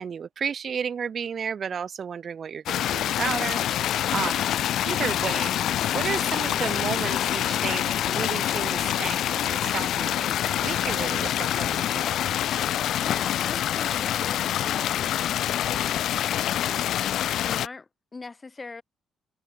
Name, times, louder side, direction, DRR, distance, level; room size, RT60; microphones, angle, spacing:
voice 1, 0.0-4.5 4.8-5.7 5.9-10.3 10.6-12.3, right 7 dB, 50° right, 2.3 m, -33 dB
sound 1, 2.7-17.7, left 11 dB, 75° left, 0.5 m, -26 dB
voice 2, 13.0-16.9 17.4-18.8, left 3 dB, 25° left, 4.3 m, -42 dB
cardioid pair, 90°, 0 cm